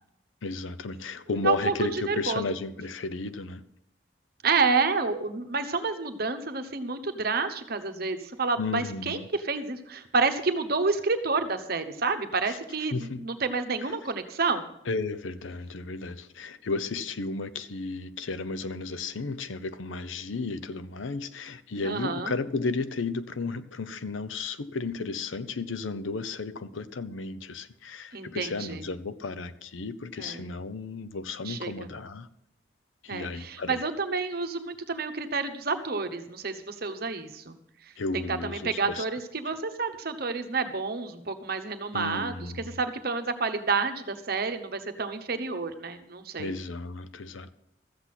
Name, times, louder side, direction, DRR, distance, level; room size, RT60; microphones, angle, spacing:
voice 1, 0.4-3.6 8.6-9.3 12.5-12.6 12.9-13.2 14.9-32.3 33.0-33.8 38.0-39.0 41.9-42.8 46.4-47.5, left 3 dB, 80° left, 14 dB, 0.7 m, -33 dB
voice 2, 1.4-2.4 4.4-14.7 21.8-22.3 28.1-28.8 30.2-30.5 31.4-31.9 33.1-37.6 38.1-46.5, right 4 dB, 50° right, 8 dB, 1.0 m, -29 dB
14.0 x 8.2 x 5.9 m, 0.80 s
head